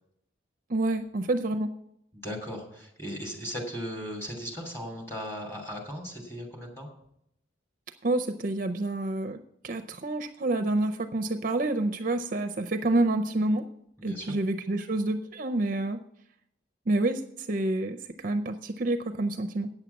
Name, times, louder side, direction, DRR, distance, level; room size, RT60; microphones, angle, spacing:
voice 1, 0.7-1.7 8.0-9.4 9.6-13.7 14.0-16.0 16.9-19.7, right 2 dB, 45° right, 6 dB, 0.5 m, -28 dB
voice 2, 2.1-6.9 14.0-14.4, equal, 10° left, 0 dB, 2.9 m, -37 dB
9.0 x 7.2 x 7.0 m, 0.75 s
head